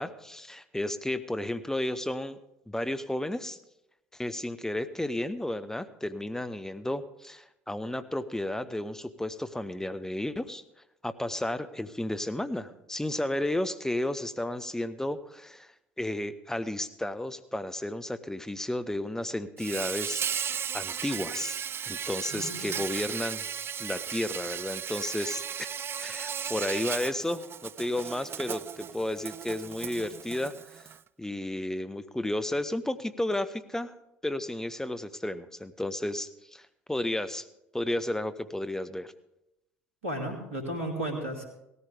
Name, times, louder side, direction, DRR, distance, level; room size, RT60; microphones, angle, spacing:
voice 1, 0.0-2.4 2.7-3.6 4.1-10.6 11.0-15.7 16.0-21.6 21.8-23.4 23.8-25.7 26.0-30.9 31.2-33.9 34.2-37.5 37.7-39.1, left 1 dB, 5° left, 12 dB, 1.1 m, -33 dB
Insect, 19.6-31.0, right 8 dB, 35° right, 0.4 m, -36 dB
voice 2, 22.3-22.8 40.0-41.4, right 1 dB, 90° right, 2 dB, 2.4 m, -34 dB
17.5 x 14.0 x 3.5 m, 0.86 s
hypercardioid pair, 60°, 7 cm